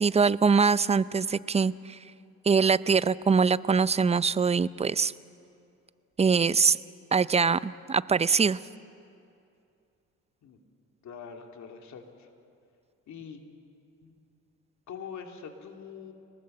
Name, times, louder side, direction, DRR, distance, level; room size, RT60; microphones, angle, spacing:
voice 1, 0.0-1.7 2.5-5.1 6.2-6.8 7.1-8.6, right 5 dB, 20° right, 17 dB, 0.5 m, -23 dB
voice 2, 11.0-12.3 13.1-13.4 14.0-14.2 14.9-16.1, left 6 dB, 65° left, 3 dB, 2.6 m, -43 dB
26.0 x 19.0 x 7.7 m, 2.6 s
cardioid pair, 90°, 30 cm